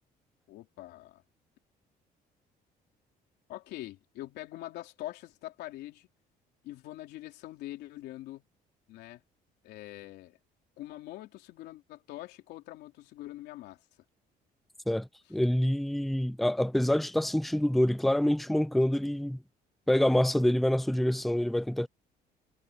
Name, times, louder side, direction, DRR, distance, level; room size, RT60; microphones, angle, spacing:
voice 1, 0.5-1.2 3.5-6.1 6.6-8.4 8.9-9.2 9.6-10.4 10.8-13.8, left 15 dB, 85° left, 3.4 m, -44 dB
voice 2, 14.9-19.4 19.9-21.9, left 1 dB, ahead, 0.5 m, -26 dB
cardioid pair, 110°, 17 cm